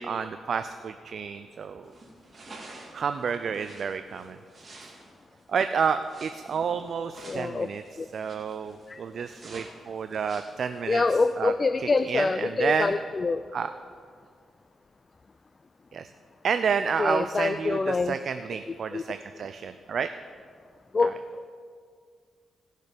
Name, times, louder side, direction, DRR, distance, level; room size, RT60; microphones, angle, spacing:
voice 1, 0.0-1.9 2.9-4.4 4.8-4.9 5.5-7.8 8.1-11.0 11.4-11.5 11.8-12.9 13.5-13.7 15.9-16.1 16.4-20.1 21.0-21.1, right 6 dB, 60° right, 9 dB, 0.4 m, -30 dB
sound 1, 1.8-11.2, right 2 dB, 35° right, 2.1 m, -49 dB
voice 2, 7.3-7.7 8.0-8.1 8.9-9.0 10.9-13.4 17.0-18.1 18.9-19.0 20.9-21.2, left 3 dB, 35° left, 12 dB, 0.3 m, -25 dB
17.0 x 6.5 x 5.2 m, 2.1 s
cardioid pair, 95°, 0 cm